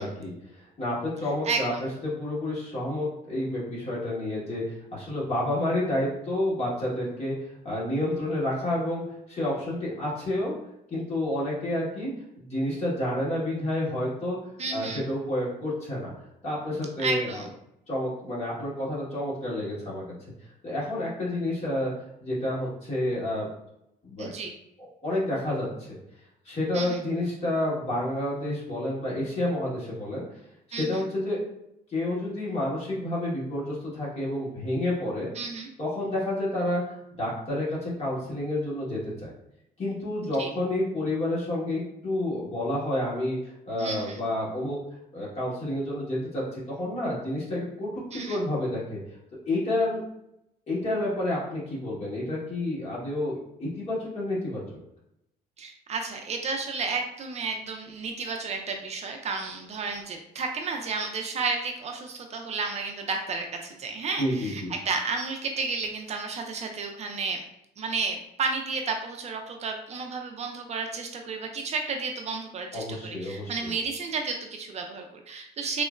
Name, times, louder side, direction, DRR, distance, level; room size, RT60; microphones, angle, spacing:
voice 1, 0.0-1.7 2.0-7.3 7.6-10.5 10.9-12.1 12.4-14.4 14.7-16.1 16.4-17.4 17.9-20.0 20.6-21.9 22.2-23.5 24.0-24.3 24.8-26.0 26.4-30.2 30.7-31.4 31.9-35.3 35.8-39.3 39.8-44.8 45.1-47.9 48.1-49.0 49.5-50.0 50.7-53.3 53.6-54.6 64.2-64.7 72.7-73.7, left 1 dB, 40° left, -6 dB, 1.4 m, -29 dB
voice 2, 14.6-15.0 17.0-17.5 24.2-24.5 26.7-27.0 30.7-31.0 35.4-35.7 40.4-40.5 43.8-44.2 48.1-48.4 55.6-67.4 67.8-75.8, right 4 dB, 40° right, 3 dB, 0.4 m, -32 dB
3.6 x 2.0 x 2.4 m, 0.81 s
cardioid pair, 110°, 17 cm